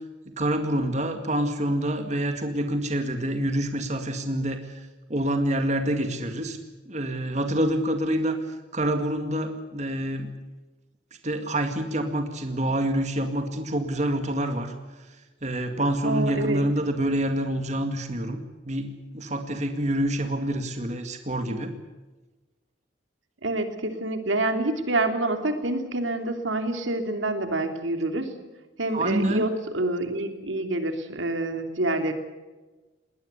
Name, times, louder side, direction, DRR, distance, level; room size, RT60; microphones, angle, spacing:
voice 1, 0.3-4.8 5.1-6.6 6.9-10.3 11.2-14.7 15.4-21.7 28.9-29.4, right 1 dB, 35° right, 6 dB, 2.1 m, -27 dB
voice 2, 16.0-16.7 23.4-28.3 28.8-32.1, right 2 dB, 90° right, 7 dB, 3.0 m, -27 dB
21.5 x 19.5 x 8.3 m, 1.2 s
head